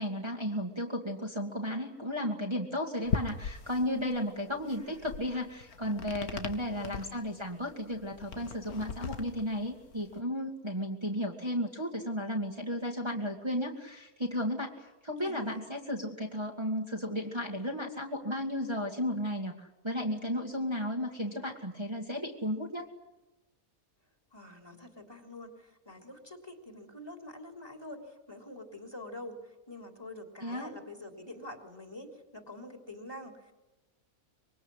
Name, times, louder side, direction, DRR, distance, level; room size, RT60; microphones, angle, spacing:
voice 1, 0.0-22.9 30.4-30.7, equal, 20° right, -1 dB, 2.1 m, -34 dB
sound 1, 3.0-10.2, left 6 dB, 85° left, 2.0 m, -40 dB
voice 2, 4.6-5.0 6.8-7.4 15.2-15.7 24.3-33.5, left 1 dB, 15° left, 6 dB, 3.3 m, -46 dB
25.5 x 23.0 x 10.0 m, 1.0 s
omnidirectional pair, 1.5 m